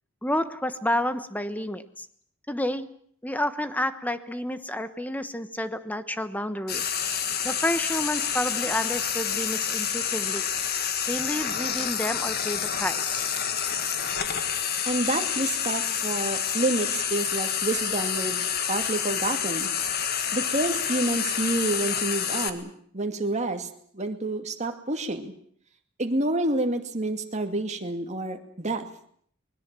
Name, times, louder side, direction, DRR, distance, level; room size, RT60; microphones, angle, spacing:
voice 1, 0.2-2.1 2.5-2.9 3.2-6.9 7.4-10.5 11.1-13.2, left 1 dB, 10° left, 11 dB, 1.2 m, -30 dB
Frying (food), 6.7-22.5, left 8 dB, 50° left, 1.9 m, -28 dB
voice 2, 14.9-18.4 18.7-19.7 20.3-23.7 23.9-25.3 26.0-28.9, right 2 dB, 35° right, 5 dB, 2.3 m, -28 dB
25.0 x 21.0 x 7.6 m, 0.64 s
head